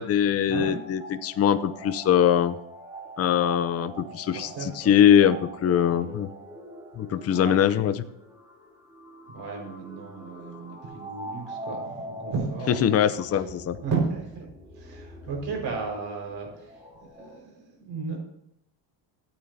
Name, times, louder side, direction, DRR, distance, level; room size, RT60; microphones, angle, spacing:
voice 1, 0.0-2.6 3.2-6.3 7.0-8.0 12.8-13.8, left 9 dB, 30° left, 12 dB, 0.5 m, -22 dB
sound 1, 0.6-17.4, right 1 dB, 5° right, 2.8 m, -43 dB
voice 2, 4.0-4.9 5.9-6.2 7.3-7.6 9.3-13.0 13.8-14.5 14.7-16.9 17.2-18.2, right 4 dB, 60° right, 0 dB, 4.8 m, -34 dB
15.0 x 8.8 x 2.7 m, 0.76 s
cardioid pair, 135°, 49 cm